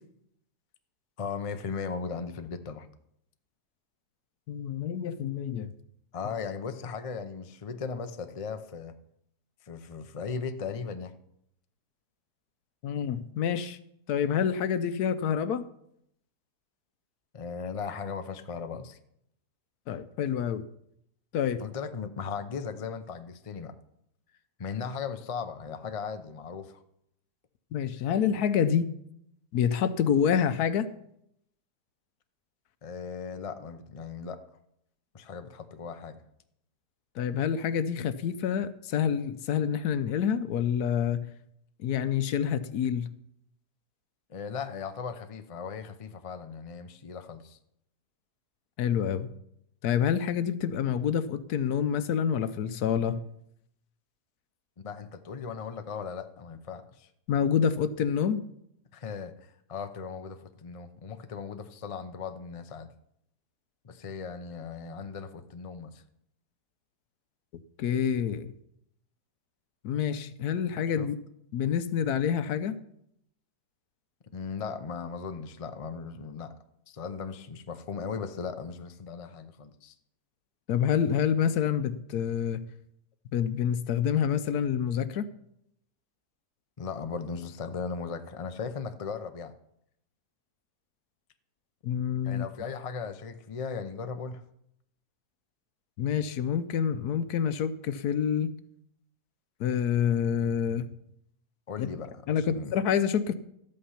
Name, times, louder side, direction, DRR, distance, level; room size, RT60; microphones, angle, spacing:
voice 1, 1.2-2.9 6.1-8.9 9.6-11.1 17.3-19.0 21.6-23.7 24.6-26.8 32.8-34.4 35.1-36.2 44.3-47.6 54.8-57.1 58.9-59.3 59.7-62.9 63.8-66.0 71.0-71.1 74.3-76.5 76.9-79.9 86.8-89.5 92.2-94.4 101.7-102.8, left 5 dB, 55° left, 9 dB, 0.3 m, -37 dB
voice 2, 4.5-5.7 12.8-13.8 14.1-15.7 19.9-20.7 21.3-21.6 27.7-28.9 29.5-30.9 37.2-41.3 41.8-43.1 48.8-49.3 49.8-53.2 57.3-58.4 67.8-68.5 69.8-71.2 71.5-72.8 80.7-82.6 83.3-85.3 91.8-92.4 96.0-98.5 99.6-100.9 101.8-101.9 102.3-103.3, left 8 dB, 70° left, 13 dB, 1.1 m, -27 dB
13.0 x 8.6 x 5.7 m, 0.75 s
omnidirectional pair, 1.8 m